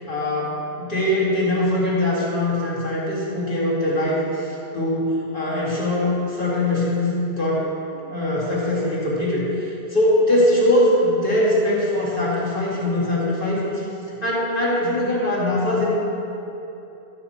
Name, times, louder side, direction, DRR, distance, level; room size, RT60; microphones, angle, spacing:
voice 1, 0.0-13.9 14.2-15.8, left 1 dB, 55° left, -7 dB, 2.6 m, -22 dB
12.5 x 7.4 x 4.3 m, 2.9 s
omnidirectional pair, 1.1 m